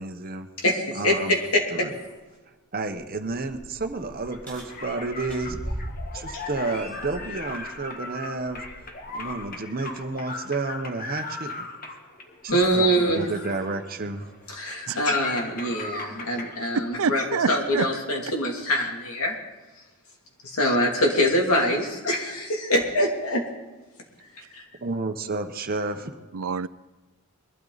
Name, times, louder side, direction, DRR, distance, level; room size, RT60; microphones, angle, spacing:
voice 1, 0.0-0.5 0.9-1.3 1.7-2.0 2.7-5.6 6.1-8.7 9.1-11.7 12.4-14.3 24.8-26.2, right 3 dB, 40° right, 6 dB, 0.9 m, -31 dB
voice 2, 0.6-1.6 12.5-13.2 14.6-19.3 20.4-23.4 24.5-24.6, equal, 75° left, 0 dB, 2.8 m, -24 dB
sound 1, 3.0-9.5 9.9-10.1 12.5-14.9 15.9-16.0 16.8-16.9, equal, 5° left, 5.1 m, -41 dB
sound 2, 4.2-17.4, left 3 dB, 40° left, 1.4 m, -39 dB
voice 3, 16.7-17.9 26.3-26.7, right 5 dB, 70° right, 16 dB, 0.5 m, -27 dB
22.0 x 12.5 x 4.0 m, 1.2 s
head